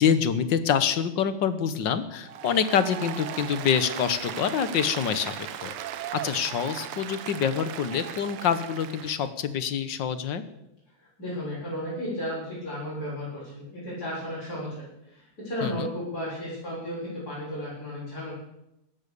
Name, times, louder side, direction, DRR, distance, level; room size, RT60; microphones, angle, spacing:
voice 1, 0.0-5.7 6.2-10.4 15.6-15.9, left 7 dB, 60° left, 12 dB, 1.6 m, -26 dB
Applause, 2.2-9.3, right 10 dB, 85° right, 1.8 m, -37 dB
voice 2, 11.0-18.3, equal, 45° left, -10 dB, 7.6 m, -34 dB
16.0 x 12.5 x 6.9 m, 0.86 s
omnidirectional pair, 2.4 m